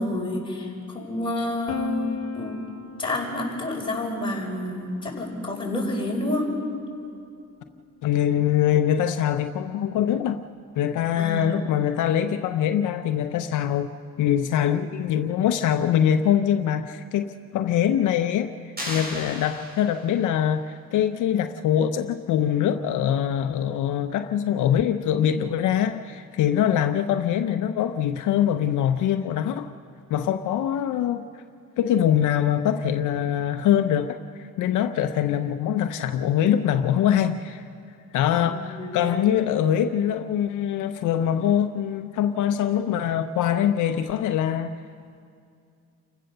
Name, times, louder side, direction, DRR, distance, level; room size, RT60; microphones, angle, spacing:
voice 1, 0.0-2.6 3.0-6.5 11.1-11.5 38.5-39.3, left 1 dB, 15° left, -3 dB, 6.3 m, -29 dB
Piano, 1.7-7.4, left 8 dB, 60° left, 1.2 m, -38 dB
voice 2, 8.0-10.4 10.8-13.9 14.2-18.5 18.9-29.7 30.1-31.2 31.8-37.6 38.1-44.7, left 10 dB, 80° left, 8 dB, 0.7 m, -23 dB
sound 1, 18.8-20.3, equal, 30° right, 6.7 m, -35 dB
29.5 x 15.5 x 6.7 m, 2.4 s
cardioid pair, 90°, 30 cm